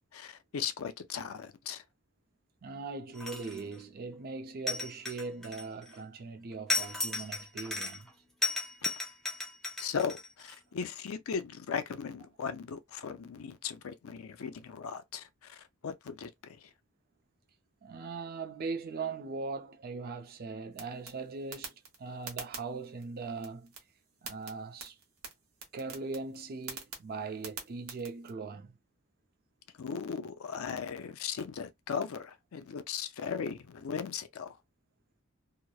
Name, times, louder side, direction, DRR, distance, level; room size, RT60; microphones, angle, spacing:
voice 1, 0.1-1.8 9.8-16.6 29.8-34.5, left 6 dB, 75° left, 0.5 m, -37 dB
voice 2, 2.6-8.1 17.8-23.7 24.2-25.0 25.7-28.8, right 4 dB, 45° right, 0.5 m, -40 dB
sound 1, 3.1-3.7 4.7-6.0 6.7-8.1 8.4-10.6, left 2 dB, 5° left, 0.6 m, -35 dB
sound 2, 20.7-28.3, right 5 dB, 75° right, 1.0 m, -48 dB
2.9 x 2.0 x 2.3 m
head